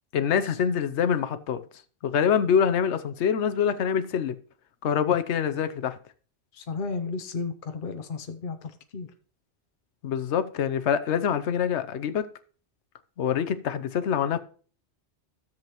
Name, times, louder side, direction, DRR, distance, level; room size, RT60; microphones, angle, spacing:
voice 1, 0.1-1.6 2.0-4.4 4.8-6.0 10.0-12.3 13.2-14.4, left 8 dB, 75° left, 1.0 m, -25 dB
voice 2, 6.5-9.1, left 4 dB, 50° left, 0.9 m, -34 dB
13.5 x 7.4 x 3.0 m
omnidirectional pair, 1.2 m